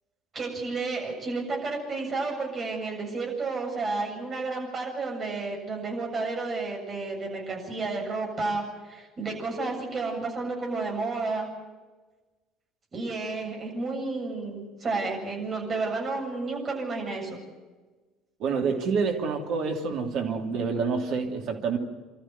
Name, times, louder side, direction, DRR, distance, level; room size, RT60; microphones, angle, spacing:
voice 1, 0.3-11.5 12.9-17.4, right 3 dB, 35° right, 0 dB, 7.6 m, -31 dB
voice 2, 18.4-21.8, right 5 dB, 55° right, 3 dB, 2.8 m, -27 dB
26.5 x 13.5 x 9.5 m, 1.2 s
figure-of-eight pair, 60°, 0 cm